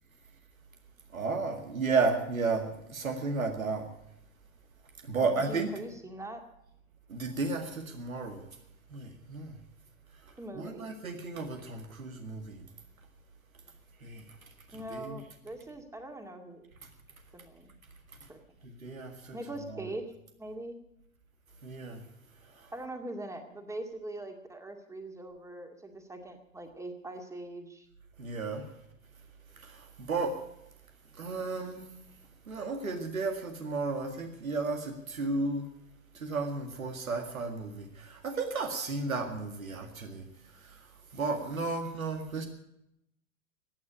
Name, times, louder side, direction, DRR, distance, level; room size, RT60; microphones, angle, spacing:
voice 1, 1.1-3.9 5.0-5.7 7.1-8.5 8.9-9.6 10.2-12.6 14.0-14.4 14.7-15.2 18.6-19.4 19.7-19.9 21.6-22.0 22.5-22.7 28.2-28.7 29.5-30.4 31.1-31.8 32.5-35.7 36.1-42.5, right 3 dB, 80° right, 4 dB, 2.0 m, -33 dB
voice 2, 5.1-6.4 10.4-10.8 14.7-16.6 17.3-17.7 18.3-18.4 19.3-20.1 20.4-20.7 22.7-27.9, right 1 dB, 5° right, 5 dB, 2.1 m, -42 dB
16.0 x 9.4 x 8.6 m, 0.81 s
figure-of-eight pair, 95°, 41 cm